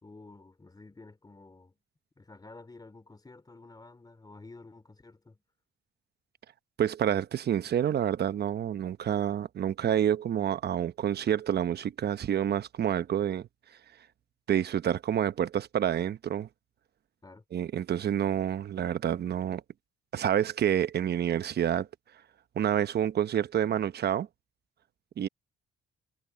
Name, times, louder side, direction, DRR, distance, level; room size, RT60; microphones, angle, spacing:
voice 1, 0.0-1.8 2.2-5.4 17.2-17.4, left 3 dB, 20° left, 4.2 m, -51 dB
voice 2, 6.8-13.5 14.5-16.5 17.5-19.6 20.1-21.9 22.5-24.3 25.2-25.3, right 10 dB, 55° right, 0.9 m, -28 dB
cardioid pair, 90°, 20 cm